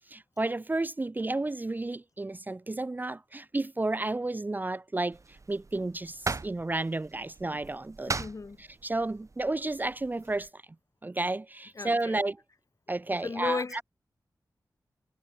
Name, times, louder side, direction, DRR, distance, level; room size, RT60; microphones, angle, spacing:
voice 1, 0.1-8.2 8.6-10.6 11.0-12.4 12.9-13.8, right 2 dB, 25° right, 0.6 m, -32 dB
sound 1, 5.1-10.5, right 3 dB, 45° right, 4.2 m, -40 dB
voice 2, 8.1-8.6 11.7-12.2 12.9-13.0 13.2-13.8, left 4 dB, 50° left, 2.8 m, -35 dB
wide cardioid pair, 110°, 7 cm